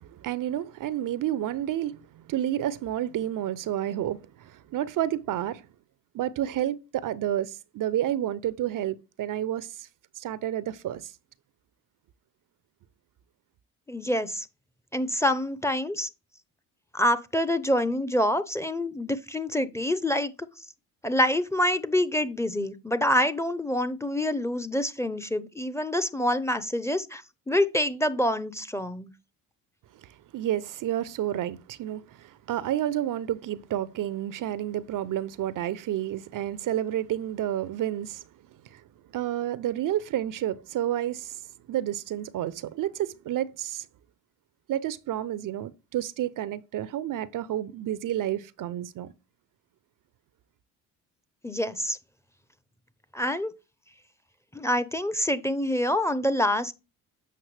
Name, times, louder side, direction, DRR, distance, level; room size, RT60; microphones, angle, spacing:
voice 1, 0.0-5.6 6.1-9.9 10.2-11.1 30.0-38.2 38.6-38.8 39.1-41.4 41.7-43.9 44.7-49.1, right 12 dB, 55° right, 0.6 m, -30 dB
voice 2, 13.9-14.5 14.9-16.1 16.9-20.3 21.0-29.1 51.4-52.0 53.1-53.5 54.5-56.7, left 1 dB, 5° left, 0.7 m, -26 dB
7.8 x 5.6 x 3.3 m
supercardioid pair, 65°, 39 cm